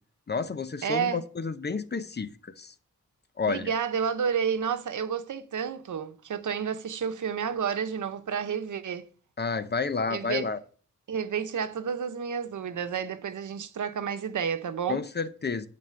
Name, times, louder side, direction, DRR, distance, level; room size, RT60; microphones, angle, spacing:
voice 1, 0.3-2.7 3.4-3.7 9.4-10.6 14.9-15.7, left 5 dB, 35° left, 0.7 m, -30 dB
voice 2, 0.8-1.2 3.4-9.0 10.1-10.5 11.1-15.0, right 7 dB, 80° right, 1.0 m, -30 dB
11.0 x 4.3 x 7.8 m
wide cardioid pair, 135°, 30 cm